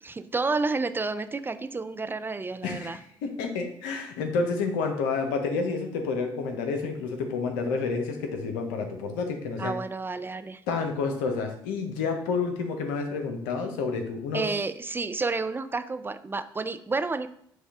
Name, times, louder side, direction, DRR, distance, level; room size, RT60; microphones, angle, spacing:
voice 1, 0.0-3.0 9.6-10.6 14.3-17.3, right 3 dB, 20° right, 11 dB, 0.3 m, -30 dB
voice 2, 2.6-9.7 10.7-14.5, left 4 dB, 85° left, 4 dB, 0.7 m, -29 dB
6.3 x 2.3 x 3.6 m, 0.66 s
hypercardioid pair, 55°, 10 cm